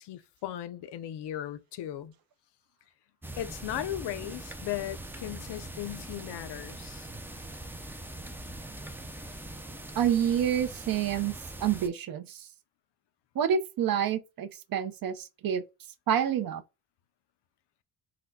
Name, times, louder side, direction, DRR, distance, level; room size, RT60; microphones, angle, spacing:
voice 1, 0.0-2.1 3.4-7.1, left 12 dB, 70° left, 0.5 m, -37 dB
sound 1, 3.2-11.9, right 1 dB, 5° right, 0.3 m, -42 dB
voice 2, 10.0-11.3 11.6-12.5 13.4-15.6 16.1-16.6, right 9 dB, 55° right, 0.5 m, -28 dB
4.1 x 2.2 x 2.6 m
cardioid pair, 105°, 43 cm